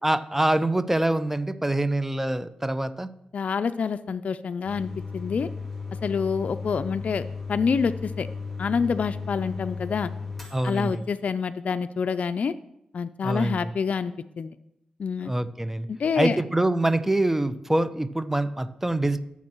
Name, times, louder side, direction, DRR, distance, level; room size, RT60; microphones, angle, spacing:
voice 1, 0.0-3.1 10.5-11.0 13.2-13.7 15.2-15.9 16.2-19.2, right 1 dB, 10° right, 12 dB, 0.7 m, -25 dB
voice 2, 3.3-5.5 6.0-8.3 8.6-10.1 10.6-12.6 12.9-14.5 15.0-15.3 15.9-16.4, left 5 dB, 65° left, 10 dB, 0.4 m, -27 dB
sound 1, 4.6-11.2, left 4 dB, 5° left, 3.7 m, -35 dB
18.5 x 7.2 x 3.0 m, 0.82 s
cardioid pair, 60°, 3 cm